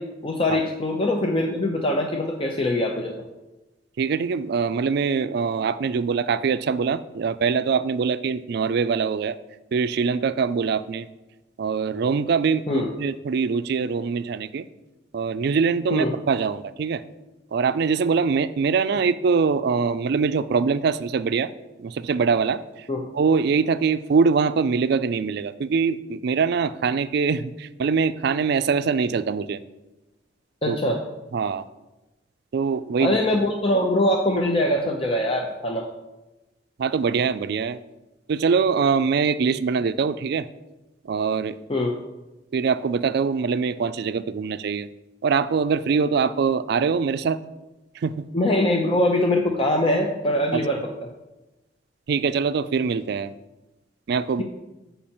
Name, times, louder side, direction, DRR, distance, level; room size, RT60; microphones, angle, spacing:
voice 1, 0.0-3.2 12.7-12.9 15.9-16.1 22.9-23.1 30.6-31.0 33.0-35.9 41.7-41.9 48.3-50.8, left 1 dB, 30° left, 1 dB, 0.6 m, -23 dB
voice 2, 4.0-9.4 9.7-11.1 11.6-14.7 15.1-17.0 17.5-21.5 21.8-22.9 23.1-29.6 30.7-30.8 31.3-31.6 32.5-33.2 36.8-37.8 38.3-40.5 41.0-41.6 42.5-44.9 45.2-47.4 47.9-48.3 50.5-50.6 52.1-53.3 54.1-54.4, right 5 dB, 60° right, 13 dB, 0.4 m, -23 dB
8.5 x 5.4 x 4.3 m, 1.1 s
head